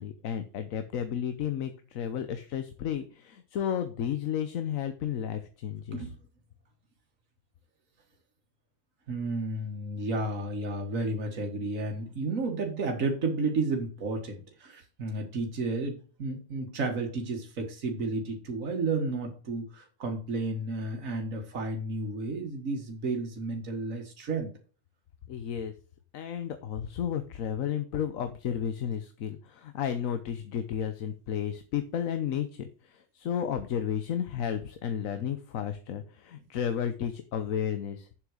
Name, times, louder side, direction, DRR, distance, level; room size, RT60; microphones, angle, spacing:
voice 1, 0.0-6.1 25.3-25.7 26.1-38.2, left 9 dB, 85° left, 9 dB, 1.2 m, -32 dB
voice 2, 9.1-24.5, right 3 dB, 85° right, 2 dB, 1.9 m, -32 dB
7.6 x 6.2 x 6.3 m, 0.39 s
omnidirectional pair, 1.4 m